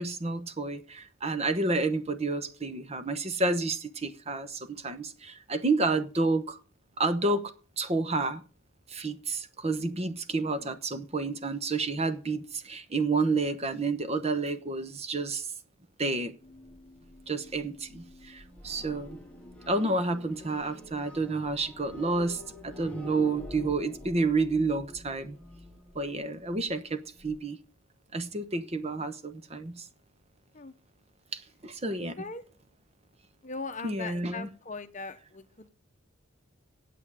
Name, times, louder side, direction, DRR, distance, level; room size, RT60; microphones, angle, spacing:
voice 1, 0.0-6.6 7.0-7.5 7.8-8.4 8.9-15.5 16.0-16.3 17.3-19.2 19.7-25.4 25.9-27.6 28.1-29.9 31.3-32.2 33.8-34.5, right 3 dB, 30° right, 0.9 m, -30 dB
sound 1, 16.4-27.4, left 1 dB, 5° left, 1.5 m, -48 dB
voice 2, 31.9-32.4 33.4-35.7, left 4 dB, 35° left, 0.8 m, -40 dB
8.9 x 8.4 x 7.3 m
head